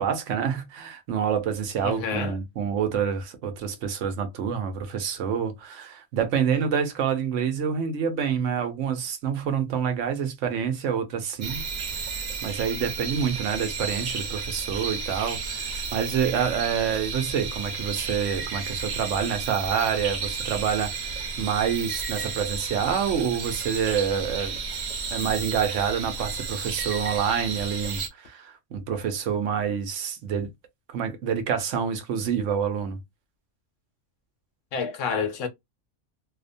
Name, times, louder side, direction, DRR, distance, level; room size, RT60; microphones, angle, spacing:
voice 1, 0.0-11.6 12.0-12.1 12.4-24.6 25.1-30.5 30.9-33.0, right 7 dB, 85° right, 1.0 m, -27 dB
voice 2, 1.8-2.3 34.7-35.5, left 6 dB, 85° left, 1.0 m, -28 dB
sound 1, 11.4-28.1, right 5 dB, 55° right, 0.5 m, -32 dB
2.7 x 2.1 x 2.6 m
omnidirectional pair, 1.2 m